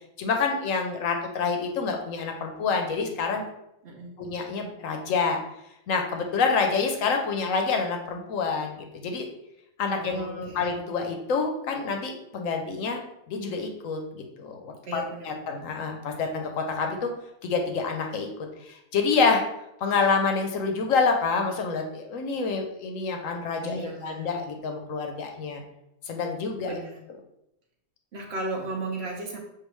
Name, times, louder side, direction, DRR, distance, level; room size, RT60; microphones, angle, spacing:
voice 1, 0.2-3.4 4.2-5.4 5.9-9.3 9.8-13.0 13.3-17.1 17.4-18.3 18.6-19.4 19.8-25.6 26.1-26.8, left 4 dB, 65° left, 4 dB, 0.9 m, -27 dB
voice 2, 3.8-4.1 9.9-10.6 14.9-15.5 23.6-24.3 26.6-27.0 28.1-29.4, right 2 dB, 55° right, 1 dB, 0.8 m, -35 dB
6.6 x 2.5 x 3.1 m, 0.84 s
omnidirectional pair, 1.8 m